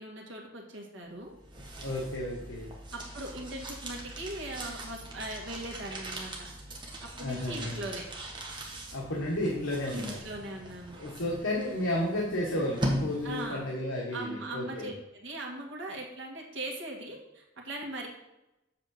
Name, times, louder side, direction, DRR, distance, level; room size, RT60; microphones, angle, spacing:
voice 1, 0.0-1.3 2.9-6.5 7.2-8.1 9.9-11.0 13.2-13.7 14.1-14.9 15.2-18.1, right 2 dB, 65° right, 0 dB, 1.8 m, -39 dB
sound 1, 1.2-13.7, right 1 dB, 25° right, 1.2 m, -40 dB
voice 2, 1.8-2.7 7.1-7.8 8.9-10.2 10.9-14.9, left 1 dB, 85° left, -3 dB, 1.4 m, -32 dB
7.6 x 3.7 x 6.4 m, 0.93 s
head